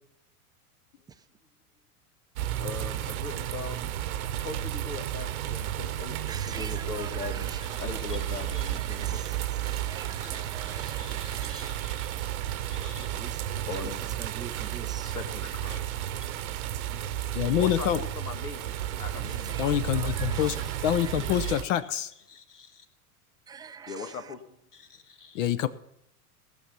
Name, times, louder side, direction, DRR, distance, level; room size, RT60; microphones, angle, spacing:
sound 1, 2.3-21.6, right 11 dB, 70° right, 1.0 m, -32 dB
voice 1, 2.6-3.8 4.4-9.2 10.2-13.2 13.7-14.0 15.0-16.3 17.6-20.9 21.1-21.6 22.3-22.8 23.9-25.4, left 5 dB, 85° left, 1.8 m, -41 dB
voice 2, 6.3-11.7 13.1-15.1 19.2-21.6 23.5-24.3, right 6 dB, 10° right, 0.4 m, -45 dB
voice 3, 17.3-18.0 19.6-20.5 20.8-22.1 25.3-25.7, left 11 dB, 55° left, 0.8 m, -26 dB
17.0 x 6.2 x 6.9 m
hypercardioid pair, 100°, 45 cm